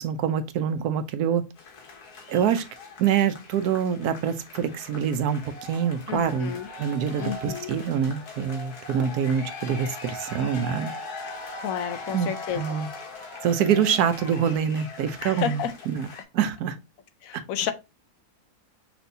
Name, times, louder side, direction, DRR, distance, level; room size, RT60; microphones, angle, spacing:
voice 1, 0.0-1.4 2.3-2.6 3.0-6.5 6.8-10.9 12.1-12.3 12.6-12.9 13.4-16.1 16.3-16.7, right 8 dB, 80° right, 1.2 m, -25 dB
sound 1, 1.6-16.2, left 3 dB, 85° left, 1.7 m, -40 dB
voice 2, 6.1-6.7 7.2-7.7 11.6-12.6 15.2-15.7 17.2-17.7, left 9 dB, 70° left, 0.9 m, -30 dB
5.9 x 3.4 x 2.6 m
omnidirectional pair, 1.6 m